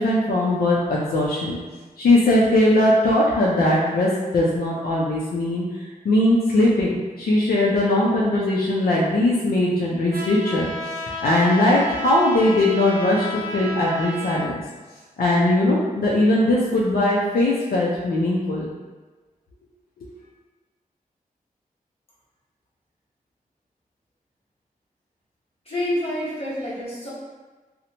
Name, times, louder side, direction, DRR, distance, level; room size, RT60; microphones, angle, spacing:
voice 1, 0.0-1.6 2.0-14.5 15.2-18.7, left 1 dB, 85° left, -5 dB, 0.4 m, -20 dB
Trumpet, 10.1-14.4, left 1 dB, 70° right, 0.6 m, -32 dB
voice 2, 25.6-27.1, left 1 dB, 40° left, -8 dB, 1.1 m, -27 dB
2.8 x 2.1 x 2.7 m, 1.3 s
wide cardioid pair, 120°, 15 cm